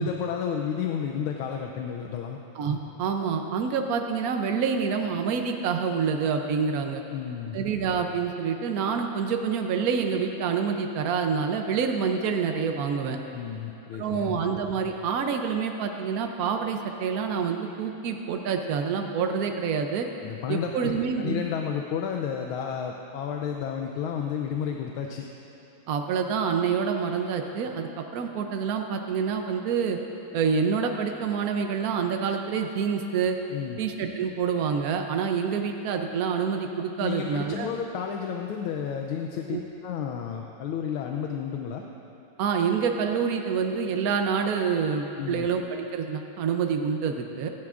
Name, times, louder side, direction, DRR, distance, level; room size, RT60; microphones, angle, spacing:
voice 1, 0.0-2.4 7.1-7.6 13.3-14.4 20.2-25.3 33.5-33.8 37.0-39.6 39.8-41.8 45.2-45.5, left 7 dB, 80° left, 2 dB, 1.4 m, -31 dB
voice 2, 2.6-7.0 7.5-13.2 13.9-20.1 20.5-21.4 25.9-30.0 30.3-33.4 33.8-37.7 39.5-39.6 42.4-47.5, right 6 dB, 80° right, 4 dB, 0.8 m, -27 dB
23.5 x 10.5 x 2.5 m, 2.9 s
omnidirectional pair, 2.4 m